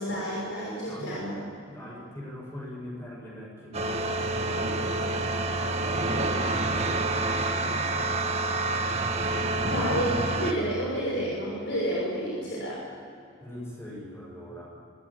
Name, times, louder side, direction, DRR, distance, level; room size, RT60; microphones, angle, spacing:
voice 1, 0.0-1.3 9.6-12.8, equal, 60° left, -5 dB, 6.2 m, -30 dB
voice 2, 0.7-1.2 1.7-4.1 4.4-5.4 5.7-8.5 13.4-14.7, left 1 dB, 15° left, -3 dB, 6.6 m, -42 dB
sound 1, 3.7-10.5, right 2 dB, 30° right, 1.9 m, -27 dB
25.0 x 18.5 x 8.9 m, 2.6 s
head